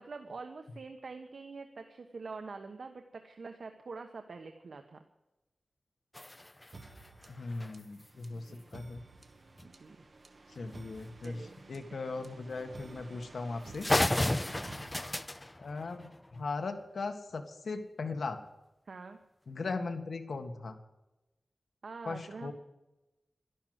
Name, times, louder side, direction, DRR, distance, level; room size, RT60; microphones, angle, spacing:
voice 1, 0.0-5.0 8.3-8.6 9.6-10.0 11.2-11.5 11.9-12.1 14.1-14.7 18.9-19.2 21.8-22.5, right 4 dB, 70° right, 5 dB, 1.2 m, -46 dB
sound 1, 6.1-8.1 9.6-9.7 10.0-10.1 10.5-10.7 11.6-11.8 12.5-12.6 13.1-13.2 13.5-13.6 13.8-16.5, left 1 dB, 15° left, 0.4 m, -34 dB
sound 2, 6.7-15.6, right 3 dB, 45° right, 1.5 m, -53 dB
voice 2, 7.3-9.0 10.5-11.4 11.7-13.9 15.6-18.4 19.5-20.8 22.0-22.5, left 3 dB, 75° left, 7 dB, 1.7 m, -38 dB
12.5 x 11.5 x 7.8 m, 0.99 s
wide cardioid pair, 110°, 0 cm